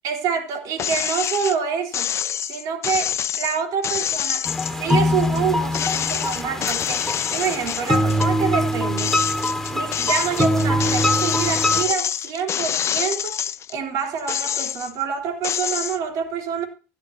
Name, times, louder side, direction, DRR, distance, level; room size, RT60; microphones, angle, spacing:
voice 1, 0.0-2.1 2.4-4.5 4.8-9.2 9.7-13.3 13.7-16.7, right 7 dB, 70° right, 3.6 m, -27 dB
sound 1, 0.8-1.6 1.9-5.4 5.7-8.3 8.7-13.7 14.2-15.0 15.4-16.0, left 9 dB, 45° left, 0.5 m, -26 dB
sound 2, 4.5-11.8, left 1 dB, 5° left, 2.0 m, -23 dB
16.0 x 12.5 x 2.9 m
supercardioid pair, 90°, 7 cm